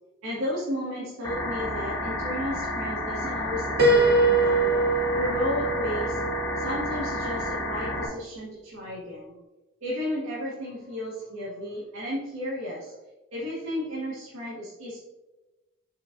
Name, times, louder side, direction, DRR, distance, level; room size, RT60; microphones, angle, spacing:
voice 1, 0.2-4.8 5.1-6.3 6.5-9.3 9.8-12.9 13.3-15.0, equal, 70° right, -8 dB, 2.0 m, -33 dB
sound 1, 1.2-8.1, left 1 dB, 15° left, 1.4 m, -31 dB
Piano, 3.8-7.5, right 2 dB, 45° right, 1.1 m, -23 dB
7.6 x 5.6 x 2.7 m, 1.1 s
head